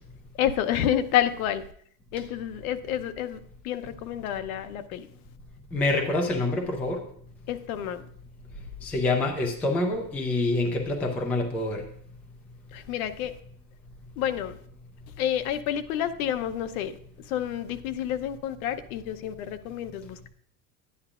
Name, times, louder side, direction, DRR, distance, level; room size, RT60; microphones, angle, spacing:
voice 1, 0.4-1.7 2.1-5.1 7.5-8.1 12.7-13.3 14.2-14.6 15.1-20.3, left 10 dB, 75° left, 0.9 m, -29 dB
voice 2, 5.7-7.0 8.8-11.8, left 2 dB, 5° left, 0.3 m, -26 dB
11.0 x 9.7 x 2.5 m
supercardioid pair, 160°, 43 cm